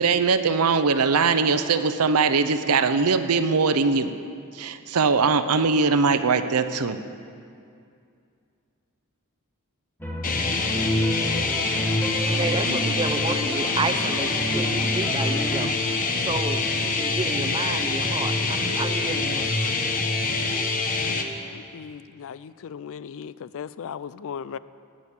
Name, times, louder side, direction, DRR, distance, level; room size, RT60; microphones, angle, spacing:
voice 1, 0.0-4.1 4.5-7.0, right 4 dB, 85° right, 10 dB, 0.7 m, -21 dB
sound 1, 10.0-15.7, equal, 10° left, 1.3 m, -31 dB
sound 2, 10.2-21.2, left 3 dB, 40° left, 1.0 m, -25 dB
voice 2, 12.3-15.7 16.3-19.6, right 3 dB, 25° right, 8 dB, 0.6 m, -31 dB
voice 3, 21.5-24.6, left 7 dB, 65° left, 17 dB, 0.4 m, -37 dB
18.0 x 6.3 x 8.2 m, 2.4 s
head